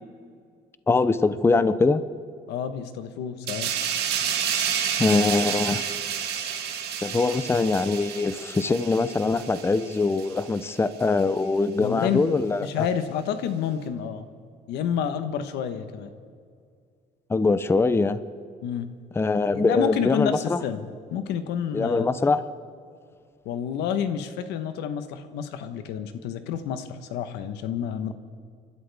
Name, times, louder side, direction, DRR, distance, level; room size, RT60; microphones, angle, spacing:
voice 1, 0.9-2.0 5.0-5.8 7.0-12.9 17.3-18.2 19.2-20.6 21.7-22.4, left 3 dB, 15° left, 13 dB, 0.6 m, -23 dB
voice 2, 2.5-3.7 11.8-12.3 12.6-14.3 14.7-16.1 18.6-18.9 19.5-20.9 21.1-22.1 23.4-28.1, left 8 dB, 85° left, 9 dB, 1.1 m, -29 dB
sound 1, 3.5-10.6 11.0-11.2, right 8 dB, 75° right, 1.8 m, -30 dB
29.5 x 12.0 x 3.5 m, 2.2 s
cardioid pair, 110°, 17 cm